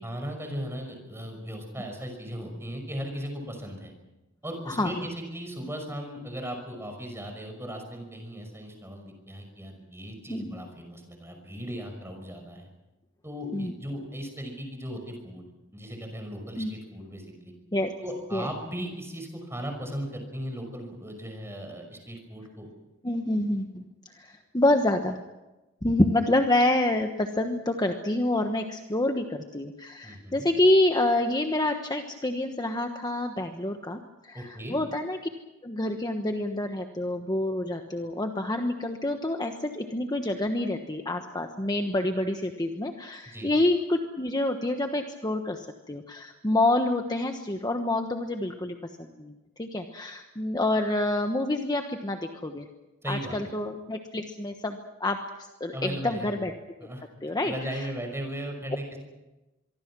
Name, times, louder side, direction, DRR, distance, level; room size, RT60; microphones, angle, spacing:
voice 1, 0.0-3.9 4.4-12.7 13.2-15.4 15.7-17.5 18.0-22.7 30.0-30.5 34.3-34.8 43.3-43.5 53.0-53.5 55.7-56.3 56.8-57.0 57.4-59.0, equal, 10° right, 4 dB, 5.7 m, -37 dB
voice 2, 23.0-23.8 24.1-25.2 25.8-35.2 35.6-52.6 53.1-55.2 55.6-56.5 57.2-57.9, left 1 dB, 20° left, 5 dB, 1.2 m, -27 dB
25.0 x 23.5 x 6.2 m, 1.1 s
head